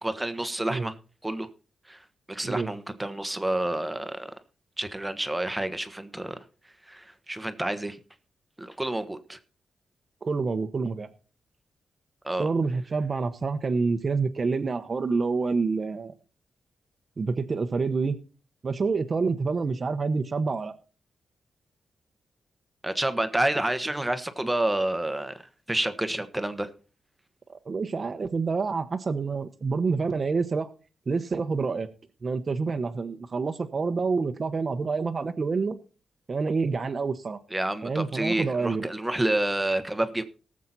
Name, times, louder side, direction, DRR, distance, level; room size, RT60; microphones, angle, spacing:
voice 1, 0.0-1.0 1.2-1.5 1.9-4.3 4.8-6.4 6.8-8.0 8.6-9.4 12.2-12.5 22.8-26.7 37.5-40.2, right 1 dB, 10° right, 1.1 m, -29 dB
voice 2, 10.2-11.1 12.4-16.1 17.2-18.2 18.6-20.7 27.5-30.7 31.1-31.9 32.2-35.7 36.3-37.4 37.8-38.8, right 4 dB, 40° right, 1.0 m, -27 dB
18.5 x 7.5 x 4.1 m
cardioid pair, 105°, 0 cm